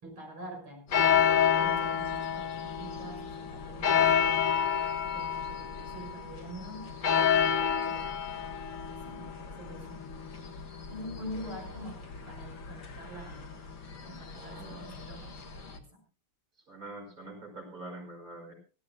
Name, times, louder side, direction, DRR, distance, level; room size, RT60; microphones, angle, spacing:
voice 1, 0.0-4.1 5.1-6.9 7.8-8.2 8.9-10.6 10.9-13.6 14.0-16.0, equal, 90° right, 2 dB, 6.8 m, -46 dB
sound 1, 0.9-15.8, left 8 dB, 65° left, 2.6 m, -30 dB
voice 2, 14.3-14.9 16.7-18.5, right 2 dB, 40° right, 2 dB, 5.9 m, -45 dB
25.0 x 15.0 x 2.2 m, 0.34 s
omnidirectional pair, 2.2 m